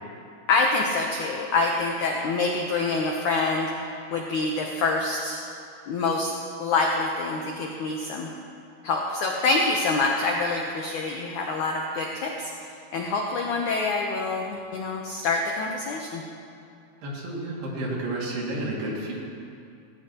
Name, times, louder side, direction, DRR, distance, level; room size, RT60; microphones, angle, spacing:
voice 1, 0.5-3.7 4.1-5.4 5.9-6.3 6.6-8.3 8.8-12.5 12.9-16.2, left 3 dB, 85° left, 0 dB, 1.7 m, -26 dB
voice 2, 17.0-19.1, right 1 dB, 70° right, -4 dB, 4.3 m, -31 dB
17.5 x 17.0 x 3.0 m, 2.5 s
omnidirectional pair, 4.8 m